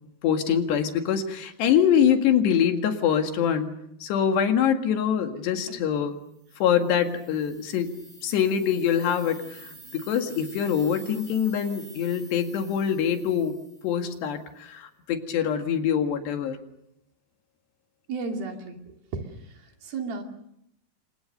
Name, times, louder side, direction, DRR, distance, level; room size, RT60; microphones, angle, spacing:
voice 1, 0.2-3.7 4.0-6.2 6.6-7.9 8.2-13.6 13.8-16.6, left 8 dB, 75° left, 5 dB, 4.0 m, -24 dB
sound 1, 6.4-14.4, right 3 dB, 45° right, 8.3 m, -48 dB
voice 2, 18.1-20.2, right 4 dB, 60° right, 3 dB, 4.3 m, -34 dB
29.0 x 25.0 x 6.7 m, 0.77 s
omnidirectional pair, 5.0 m